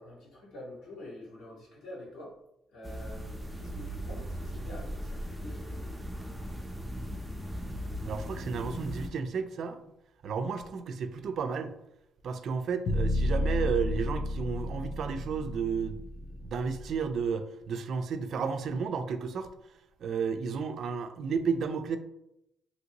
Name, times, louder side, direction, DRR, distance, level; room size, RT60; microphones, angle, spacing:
voice 1, 0.0-2.3 2.7-5.9, left 1 dB, 80° left, -6 dB, 1.3 m, -47 dB
sound 1, 2.8-9.1, equal, 10° right, 0.5 m, -38 dB
voice 2, 8.0-9.8 10.2-11.7 12.2-19.5 20.0-22.0, right 5 dB, 65° right, 8 dB, 0.3 m, -32 dB
sound 2, 12.9-17.0, left 1 dB, 55° left, 0.4 m, -31 dB
2.9 x 2.6 x 2.8 m, 0.83 s
cardioid pair, 90°, 0 cm